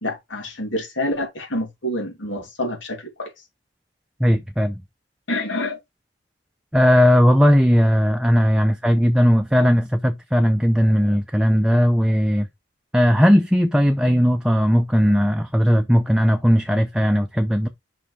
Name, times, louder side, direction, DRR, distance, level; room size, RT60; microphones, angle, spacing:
voice 1, 0.0-3.3 5.3-5.8, left 1 dB, 90° left, 2.8 m, -27 dB
voice 2, 4.2-4.8 6.7-12.5 12.9-17.7, equal, 5° right, 0.5 m, -17 dB
7.2 x 5.6 x 3.3 m
head